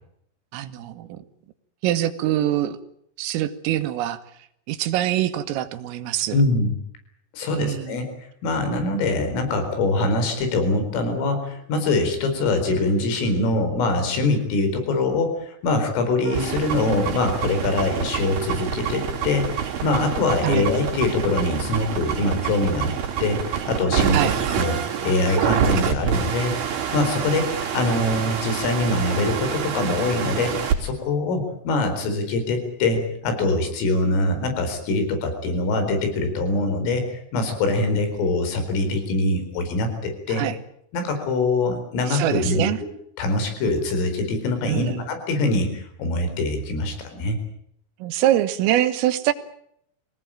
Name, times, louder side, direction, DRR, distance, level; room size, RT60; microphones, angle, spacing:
voice 1, 0.5-1.2 1.8-2.8 3.2-4.2 4.7-6.4 7.6-8.0 20.4-20.7 24.1-24.4 40.3-40.6 42.1-42.8 44.7-45.0 48.0-49.3, right 13 dB, 90° right, 11 dB, 4.0 m, -24 dB
voice 2, 6.3-6.8 7.3-8.1 8.4-22.9 23.2-40.5 40.9-42.7 43.2-47.4, left 2 dB, 80° left, 7 dB, 7.0 m, -23 dB
sound 1, 16.2-30.8, right 8 dB, 55° right, 5.0 m, -27 dB
25.0 x 18.5 x 8.9 m, 0.69 s
omnidirectional pair, 5.7 m